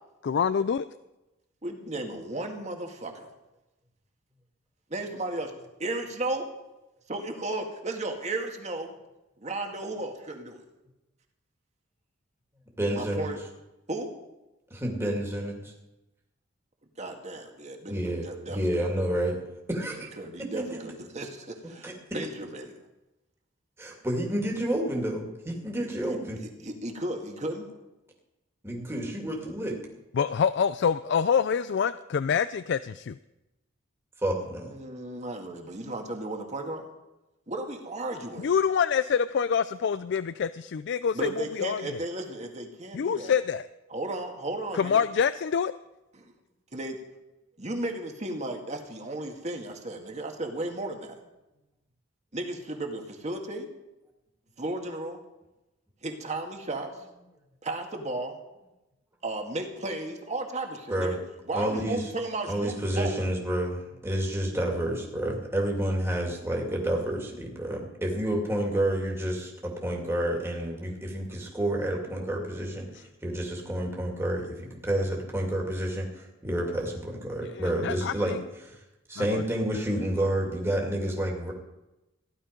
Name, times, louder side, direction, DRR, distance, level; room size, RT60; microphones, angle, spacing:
voice 1, 0.2-0.9 30.1-33.2 38.4-42.0 42.9-43.7 44.7-45.7 72.9-73.0 77.5-78.4 79.2-79.4, left 7 dB, 60° left, 14 dB, 0.4 m, -26 dB
voice 2, 1.6-3.3 4.9-5.5 5.8-6.5 7.1-8.9 9.4-10.6 12.9-13.4 13.9-14.1 17.0-18.6 20.2-22.7 26.4-27.7 34.7-36.9 37.5-38.5 41.1-43.3 43.9-45.0 46.2-46.3 46.7-47.0 47.6-51.2 52.3-53.7 54.6-55.2 56.0-56.9 57.6-58.4 59.2-61.2 61.5-63.2, right 2 dB, 35° right, 3 dB, 1.9 m, -34 dB
voice 3, 12.8-13.3 14.7-15.7 17.9-19.4 19.7-20.1 20.4-20.8 21.8-21.9 23.8-26.4 28.6-29.8 34.2-34.7 60.9-61.2 61.5-62.1 62.5-78.8 79.1-81.5, right 1 dB, 15° right, -1 dB, 2.4 m, -29 dB
16.0 x 11.5 x 5.2 m, 0.97 s
head